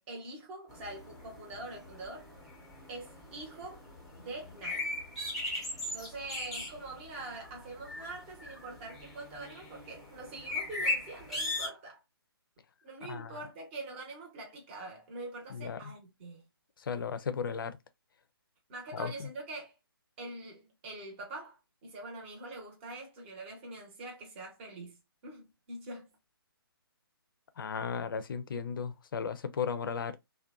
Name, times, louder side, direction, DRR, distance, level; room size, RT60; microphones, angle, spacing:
voice 1, 0.0-2.3 2.9-3.8 4.2-4.9 5.9-12.0 12.8-16.4 18.7-19.8 20.2-26.1 27.7-27.8, right 2 dB, 30° right, 0.8 m, -44 dB
sound 1, 0.7-11.7, left 2 dB, ahead, 0.6 m, -39 dB
voice 2, 16.8-17.8 18.9-19.3 27.6-30.2, left 6 dB, 60° left, 0.4 m, -35 dB
2.6 x 2.1 x 2.2 m
figure-of-eight pair, 145°, 13 cm